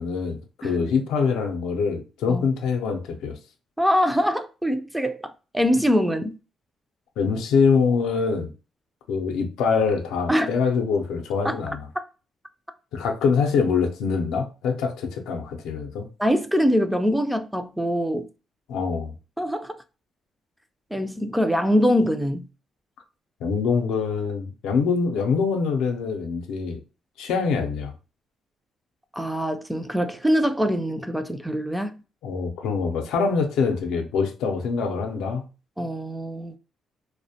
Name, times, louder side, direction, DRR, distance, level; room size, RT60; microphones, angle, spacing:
voice 1, 0.0-3.4 7.2-8.5 9.1-11.9 12.9-16.1 18.7-19.1 23.4-26.8 27.2-27.9 32.2-35.5, left 5 dB, 90° left, 0.4 m, -24 dB
voice 2, 3.8-6.4 10.3-10.5 11.4-11.6 16.2-18.3 19.4-19.7 20.9-22.5 29.1-31.9 35.8-36.6, equal, 5° right, 0.3 m, -23 dB
2.4 x 2.1 x 2.7 m
cardioid pair, 90°, 0 cm